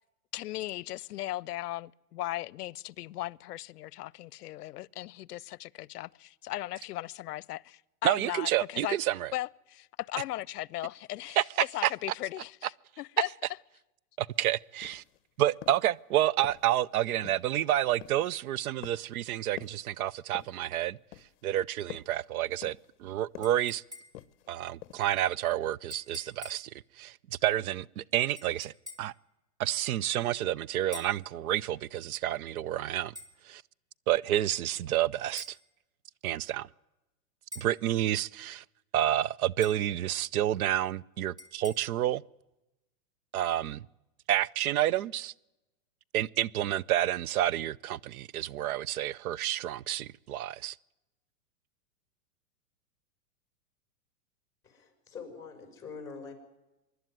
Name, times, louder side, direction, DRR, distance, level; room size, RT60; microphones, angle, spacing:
voice 1, 0.3-9.0 9.3-11.4 11.7-12.7 13.0-13.3, left 15 dB, 85° left, 0.7 m, -37 dB
voice 2, 8.0-9.3 11.4-11.5 11.8-11.9 14.2-15.0 15.4-21.0 21.4-23.8 24.5-26.7 27.0-28.7 29.0-29.1 29.6-33.1 33.5-33.6 34.1-35.6 36.2-36.7 37.6-38.6 38.9-42.2 43.3-43.9 44.3-45.3 46.1-50.8, right 12 dB, 70° right, 0.6 m, -29 dB
sound 1, 14.3-14.4 14.8-15.2 15.6-15.9 16.4-16.8 17.2-17.6 18.0-18.3 18.8-19.2 19.6-19.9 20.3-20.7 21.1-21.5 21.9-22.2 22.6-23.0 23.3-23.7 24.1-24.5 24.8-25.2 25.5-25.6, left 14 dB, 50° left, 0.9 m, -47 dB
sound 2, 23.4-24.4 25.9-26.7 28.4-29.2 30.9-31.3 33.2-33.4 35.4-35.6 37.5-37.8 39.6-39.9 41.4-41.7, left 2 dB, 10° right, 2.1 m, -47 dB
voice 3, 54.6-56.3, left 5 dB, 5° left, 4.4 m, -44 dB
24.5 x 11.5 x 9.2 m
supercardioid pair, 155°, 45 cm